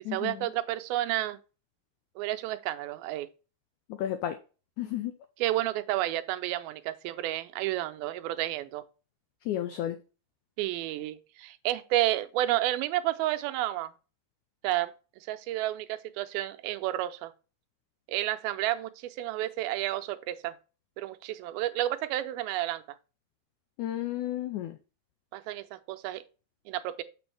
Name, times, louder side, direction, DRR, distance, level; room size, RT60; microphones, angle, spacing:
voice 1, 0.0-1.4 2.2-3.3 5.4-8.8 10.6-13.9 14.6-14.9 15.3-17.3 18.1-20.5 21.0-22.8 25.3-26.2 26.7-27.0, right 14 dB, 90° right, 2.5 m, -31 dB
voice 2, 4.0-4.4 4.8-5.1 9.5-10.0 23.8-24.8, left 12 dB, 90° left, 1.7 m, -32 dB
6.9 x 6.1 x 3.3 m
omnidirectional pair, 4.2 m